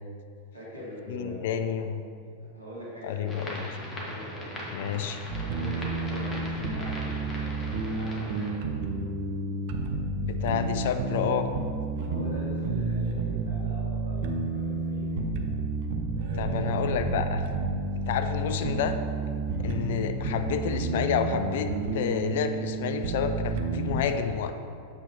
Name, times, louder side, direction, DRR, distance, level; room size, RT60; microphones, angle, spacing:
voice 1, 0.5-1.8 2.4-3.7 4.0-4.7 5.3-8.5 12.0-15.3 16.1-16.8 18.3-18.6 19.5-19.8, equal, 90° right, -7 dB, 1.3 m, -43 dB
voice 2, 1.1-2.0 3.0-3.6 4.7-5.2 10.2-11.5 16.4-17.5 18.1-19.0 19.6-24.6, left 7 dB, 55° left, 8 dB, 0.3 m, -29 dB
sound 1, 3.3-8.5, equal, 20° left, 1.3 m, -39 dB
sound 2, 5.3-24.0, right 3 dB, 50° right, 0.5 m, -30 dB
8.1 x 5.6 x 2.7 m, 2.5 s
figure-of-eight pair, 90°, 0 cm